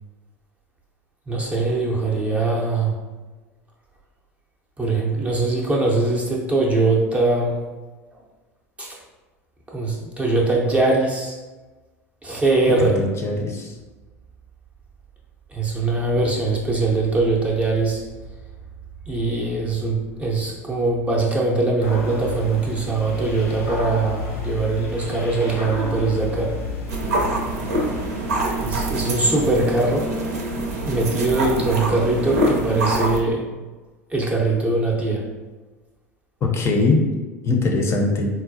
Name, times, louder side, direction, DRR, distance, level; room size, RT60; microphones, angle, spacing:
voice 1, 1.3-3.0 4.8-7.6 8.8-9.0 9.7-11.4 12.2-13.0 15.5-18.0 19.1-26.6 28.6-30.2 30.8-33.5 34.1-35.3, right 3 dB, 15° right, -3 dB, 0.6 m, -22 dB
voice 2, 13.0-13.7 36.4-37.0 37.4-38.3, left 3 dB, 30° left, 1 dB, 0.6 m, -21 dB
sound 1, 21.8-29.0, left 3 dB, 75° left, 0.9 m, -32 dB
sound 2, 26.9-33.2, right 1 dB, 70° right, 0.6 m, -25 dB
4.0 x 2.2 x 2.6 m, 1.2 s
figure-of-eight pair, 75°, 8 cm